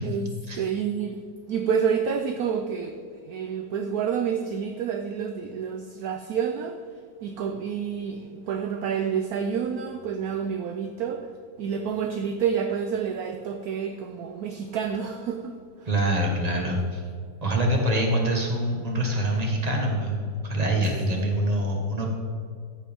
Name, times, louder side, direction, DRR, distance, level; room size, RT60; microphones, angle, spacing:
voice 1, 0.0-6.8 7.2-11.3 11.6-15.5, right 7 dB, 70° right, 6 dB, 0.9 m, -29 dB
voice 2, 15.8-17.0 17.4-22.1, right 1 dB, 20° right, 0 dB, 1.6 m, -25 dB
14.0 x 8.6 x 3.5 m, 2.1 s
omnidirectional pair, 2.1 m